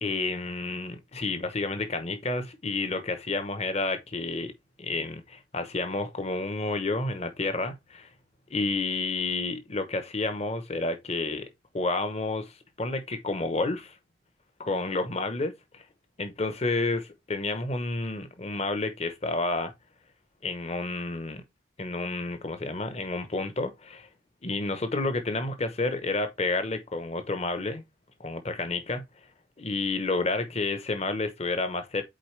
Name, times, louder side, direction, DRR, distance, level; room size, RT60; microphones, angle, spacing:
voice 1, 0.0-4.5 4.8-8.1 8.5-11.5 11.7-13.9 14.6-15.8 16.2-19.7 20.4-21.4 21.8-24.1 24.4-27.8 28.2-29.0 29.6-32.0, left 3 dB, 35° left, 0.9 m, -30 dB
7.7 x 4.5 x 3.3 m
head